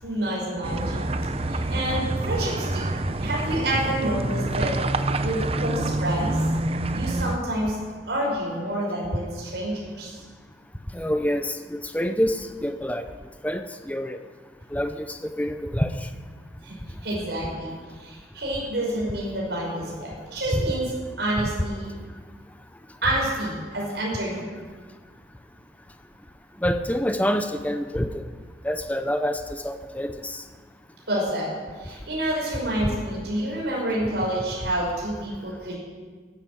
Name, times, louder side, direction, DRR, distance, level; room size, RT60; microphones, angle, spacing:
voice 1, 0.0-1.0 1.4-2.9 3.2-4.8 5.2-6.4 7.0-7.8 8.1-10.2 16.6-16.8 17.0-17.7 18.0-20.9 21.2-21.9 23.0-24.5 31.1-31.5 31.8-35.8, right 1 dB, 70° right, -4 dB, 5.3 m, -28 dB
sound 1, 0.6-7.4, right 2 dB, 35° right, 0.7 m, -27 dB
voice 2, 10.9-13.1 13.4-14.2 14.7-16.1 20.5-20.7 26.6-28.2 28.6-30.4, equal, 10° left, 8 dB, 0.6 m, -27 dB
15.0 x 10.5 x 7.8 m, 1.5 s
head